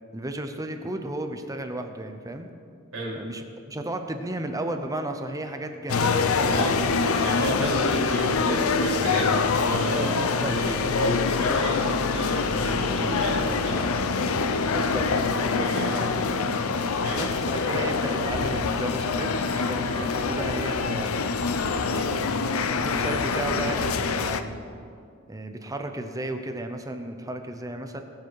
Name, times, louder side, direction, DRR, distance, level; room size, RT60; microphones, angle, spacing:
voice 1, 0.1-2.5 3.1-6.1 7.6-7.7 9.9-10.5 10.8-11.1 11.6-11.9 14.7-16.3 17.1-21.2 21.9-24.6 25.3-28.0, right 1 dB, 15° right, 6 dB, 0.7 m, -34 dB
sound 1, 5.9-24.4, left 4 dB, 80° left, 0.7 m, -25 dB
voice 2, 6.5-6.8 7.2-10.2 10.5-14.0 15.6-15.9 16.9-17.9 19.9-20.1, right 1 dB, 75° right, -5 dB, 3.9 m, -33 dB
20.5 x 7.3 x 4.7 m, 2.4 s
head